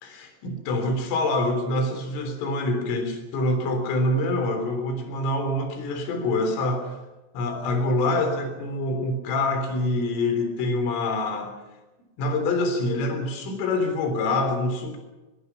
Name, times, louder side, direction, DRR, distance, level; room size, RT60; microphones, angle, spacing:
voice 1, 0.0-7.0 7.3-11.5 12.2-15.0, left 2 dB, 80° left, 7 dB, 6.0 m, -25 dB
25.0 x 23.0 x 5.9 m, 1.1 s
omnidirectional pair, 5.7 m